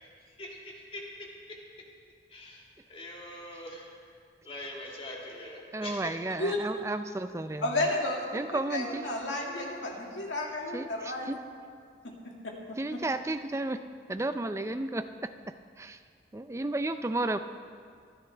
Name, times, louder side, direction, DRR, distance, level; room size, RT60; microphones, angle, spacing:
voice 1, 2.9-3.8 4.5-6.1, left 1 dB, 30° left, -2 dB, 2.0 m, -42 dB
voice 2, 5.7-7.7 8.3-9.1 10.7-11.4 12.8-13.8 14.1-15.1 15.8-16.0 16.3-17.4, right 2 dB, 15° right, 10 dB, 0.4 m, -32 dB
voice 3, 7.6-11.3 12.4-12.5, left 2 dB, 90° left, -1 dB, 2.2 m, -32 dB
25.0 x 10.5 x 3.4 m, 2.1 s
head